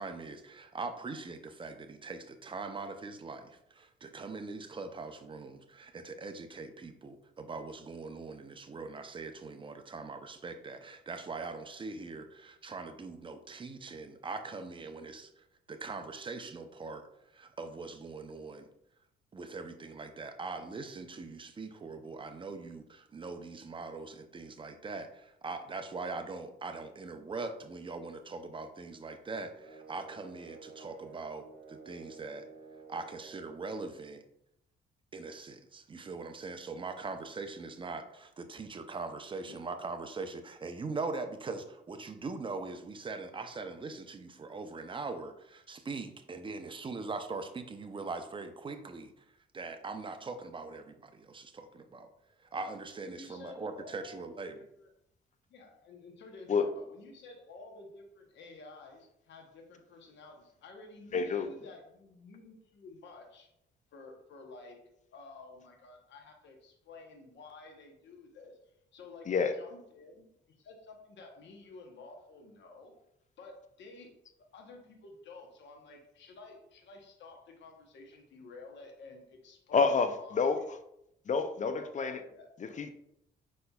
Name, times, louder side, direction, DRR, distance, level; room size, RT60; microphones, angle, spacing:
voice 1, 0.0-15.3 15.7-17.1 17.3-18.7 19.3-32.4 32.9-34.2 35.1-49.1 49.5-52.1 52.5-54.5, right 3 dB, 25° right, 8 dB, 0.5 m, -41 dB
sound 1, 29.5-33.8, right 5 dB, 80° right, 1.0 m, -51 dB
voice 2, 52.9-54.9 55.5-63.5 63.9-64.8 65.1-68.6 68.9-70.2 70.6-72.9 73.4-74.1 74.5-80.7 81.8-82.8, left 3 dB, 65° left, 2 dB, 0.9 m, -52 dB
voice 3, 61.1-61.5 69.3-69.5 79.7-80.6 81.3-82.2 82.6-82.9, left 5 dB, 40° left, 9 dB, 0.5 m, -28 dB
5.2 x 4.2 x 2.3 m, 0.78 s
cardioid pair, 90°, 20 cm